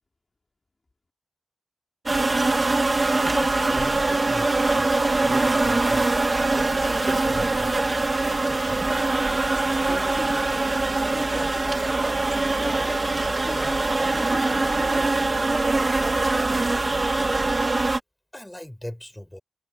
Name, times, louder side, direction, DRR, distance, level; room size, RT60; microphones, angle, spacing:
sound 1, 2.1-18.0, right 2 dB, 35° right, 2.0 m, -23 dB
voice 1, 3.1-6.1 6.5-8.0 18.3-19.4, left 1 dB, 10° left, 6.4 m, -38 dB
voice 2, 9.8-10.7 11.1-12.1 12.6-15.2, left 2 dB, 30° left, 5.2 m, -39 dB
wide cardioid pair, 95°, 0 cm